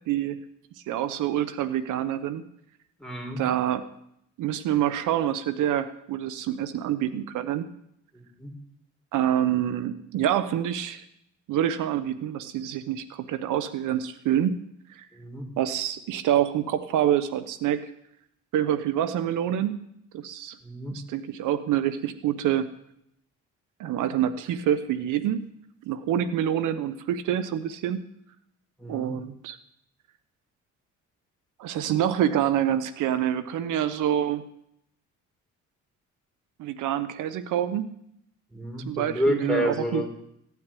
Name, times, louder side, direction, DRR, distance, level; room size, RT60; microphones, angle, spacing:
voice 1, 0.1-0.4 0.9-2.4 3.4-3.9 4.4-7.7 9.1-11.0 11.5-14.6 14.9-15.1 15.6-17.9 18.5-19.8 20.1-20.6 20.9-22.7 23.8-25.4 25.8-28.0 28.9-29.6 31.6-34.4 36.6-37.8 38.9-40.1, right 10 dB, 85° right, 13 dB, 1.0 m, -26 dB
voice 2, 3.0-3.4 8.1-8.5 15.1-15.5 20.6-21.0 28.8-29.1 38.5-40.1, left 1 dB, ahead, 1 dB, 4.3 m, -29 dB
16.0 x 9.6 x 9.1 m, 0.75 s
cardioid pair, 90°, 30 cm